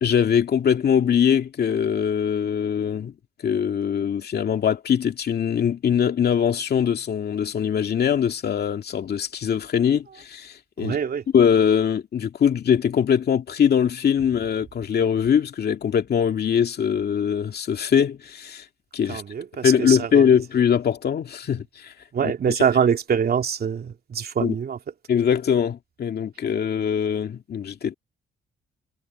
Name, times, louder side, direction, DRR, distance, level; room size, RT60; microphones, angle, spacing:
voice 1, 0.0-3.1 3.4-11.0 11.3-18.6 18.9-19.2 19.6-21.9 22.2-22.3 24.4-24.6 25.1-28.0, left 8 dB, 55° left, 2.2 m, -22 dB
voice 2, 10.8-11.2 19.1-20.3 22.1-24.8, right 7 dB, 50° right, 2.8 m, -24 dB
cardioid pair, 90°, 20 cm